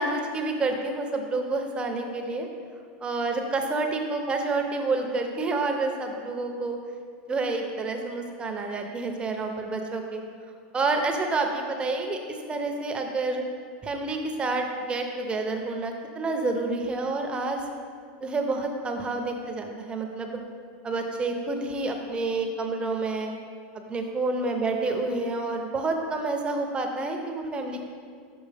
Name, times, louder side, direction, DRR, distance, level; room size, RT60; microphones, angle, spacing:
voice 1, 0.0-2.5 3.0-6.8 7.3-10.2 10.7-13.4 13.8-17.6 18.2-20.4 20.8-23.3 23.7-27.9, right 3 dB, 20° right, 3 dB, 0.6 m, -29 dB
6.2 x 5.9 x 3.3 m, 2.1 s
supercardioid pair, 135°, 5 cm